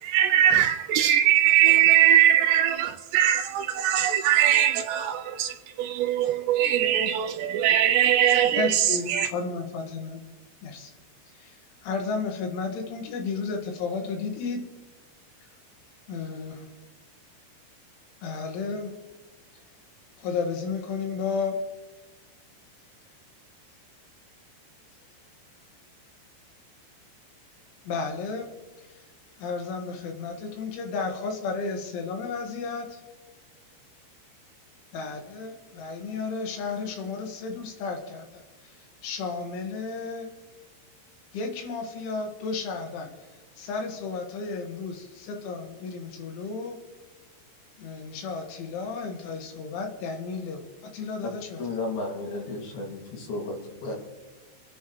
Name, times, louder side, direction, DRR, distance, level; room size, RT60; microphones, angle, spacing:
voice 1, 0.0-9.3, right 11 dB, 85° right, 2.6 m, -21 dB
voice 2, 8.5-10.2 10.6-10.9 11.4-11.5 11.8-14.6 16.1-16.6 18.2-18.9 20.2-21.6 27.9-28.5 29.4-33.0 34.9-38.4 39.0-40.3 41.3-43.1 43.6-46.8 47.8-51.6, left 4 dB, 90° left, 4.1 m, -33 dB
voice 3, 51.6-54.0, left 2 dB, 60° left, 4.0 m, -33 dB
27.0 x 10.0 x 3.1 m
omnidirectional pair, 5.3 m